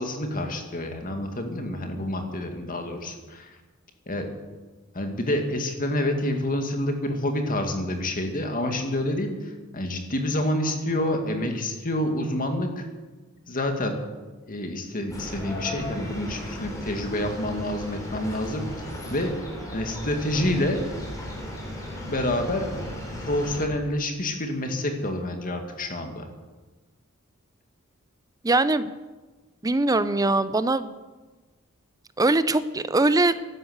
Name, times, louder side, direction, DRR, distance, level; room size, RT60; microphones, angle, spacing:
voice 1, 0.0-3.5 4.1-4.3 4.9-9.4 9.7-12.9 13.5-14.0 14.5-18.6 19.1-19.3 19.7-20.8 22.1-22.7 23.2-26.3, left 1 dB, 40° left, 5 dB, 2.1 m, -28 dB
sound 1, 15.1-23.7, left 1 dB, 15° left, 3.7 m, -36 dB
voice 2, 28.4-28.9 29.6-30.9 32.2-33.3, right 2 dB, 15° right, 14 dB, 0.6 m, -22 dB
12.0 x 11.5 x 8.0 m, 1.2 s
head